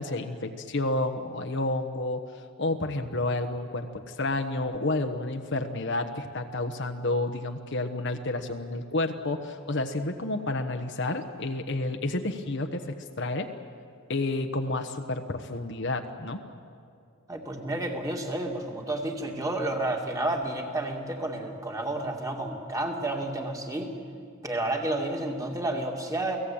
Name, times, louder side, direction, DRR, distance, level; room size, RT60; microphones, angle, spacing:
voice 1, 0.0-2.2 2.6-13.5 14.1-16.4, left 2 dB, 55° left, 5 dB, 1.2 m, -30 dB
voice 2, 17.3-23.9 24.4-26.4, right 1 dB, 15° right, 2 dB, 2.5 m, -31 dB
29.5 x 18.0 x 8.8 m, 2.5 s
head